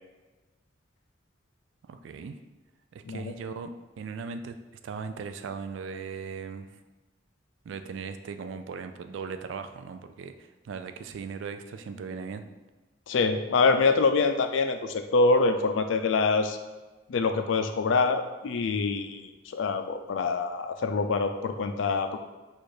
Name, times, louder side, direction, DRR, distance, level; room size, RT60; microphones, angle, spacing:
voice 1, 1.9-2.4 2.9-3.7 4.0-4.6 4.8-6.8 7.7-12.4, right 5 dB, 75° right, 8 dB, 0.3 m, -38 dB
voice 2, 13.1-16.6 17.1-22.2, left 4 dB, 80° left, 7 dB, 0.4 m, -25 dB
4.3 x 2.5 x 4.8 m, 1.2 s
head